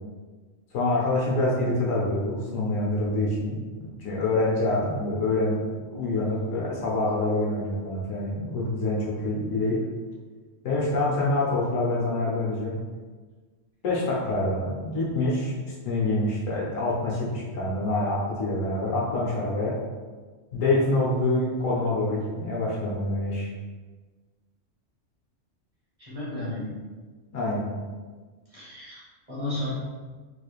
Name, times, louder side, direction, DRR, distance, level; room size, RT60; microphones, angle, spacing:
voice 1, 0.7-5.6 5.9-9.8 10.6-12.8 13.8-19.7 20.5-23.5 27.3-27.7, left 2 dB, 80° left, -5 dB, 1.3 m, -26 dB
voice 2, 26.0-26.7 28.5-29.0 29.3-29.7, left 1 dB, 30° right, -9 dB, 1.3 m, -33 dB
3.4 x 3.4 x 2.4 m, 1.4 s
omnidirectional pair, 1.3 m